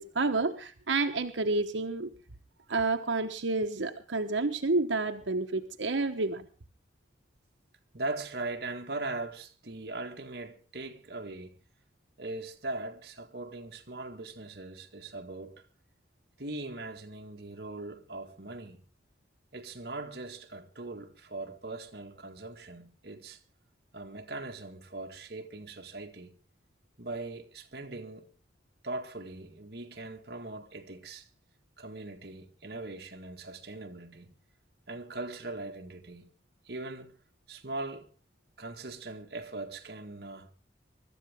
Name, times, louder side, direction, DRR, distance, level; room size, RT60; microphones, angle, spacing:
voice 1, 0.0-2.1 2.7-6.5, right 3 dB, 90° right, 1.1 m, -29 dB
voice 2, 7.9-11.6 12.2-15.7 16.4-18.8 19.5-23.4 23.9-26.4 27.0-28.3 28.8-31.3 31.8-34.3 34.9-36.3 36.7-37.2 37.5-38.1 38.6-40.5, right 2 dB, 55° right, 1.9 m, -40 dB
24.0 x 13.5 x 3.6 m
head